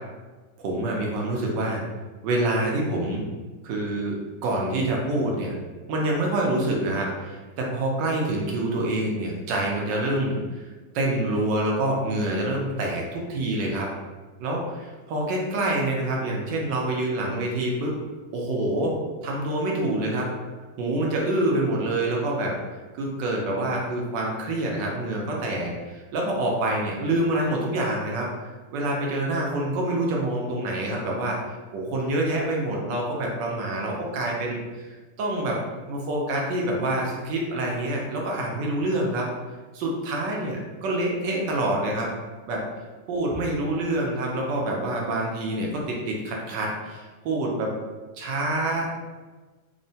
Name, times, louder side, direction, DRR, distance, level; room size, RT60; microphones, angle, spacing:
voice 1, 0.6-1.8 2.2-3.3 3.6-5.5 5.9-10.7 10.9-13.9 14.4-18.0 18.3-20.3 20.8-22.6 22.9-31.4 31.7-39.3 39.7-42.1 42.5-42.6 43.1-47.7 48.2-49.0, right 1 dB, 75° right, -1 dB, 1.2 m, -26 dB
3.6 x 2.1 x 2.6 m, 1.3 s
omnidirectional pair, 2.0 m